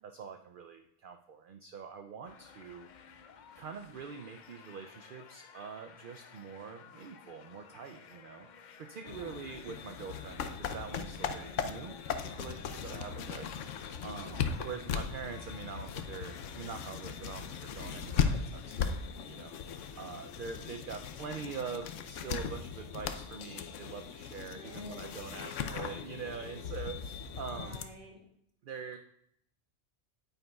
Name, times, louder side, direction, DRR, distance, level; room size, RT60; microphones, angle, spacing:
voice 1, 0.0-3.1 3.6-8.5 8.8-13.5 14.0-27.8 28.6-29.0, right 6 dB, 60° right, 6 dB, 0.5 m, -44 dB
sound 1, 2.3-21.4, left 7 dB, 60° left, 0.5 m, -56 dB
voice 2, 9.0-9.4 14.3-14.5 24.5-25.2 27.5-28.1, equal, 45° right, -1 dB, 1.9 m, -50 dB
sound 2, 9.1-27.8, left 7 dB, 75° left, 1.0 m, -38 dB
9.1 x 9.1 x 2.3 m, 0.73 s
omnidirectional pair, 1.3 m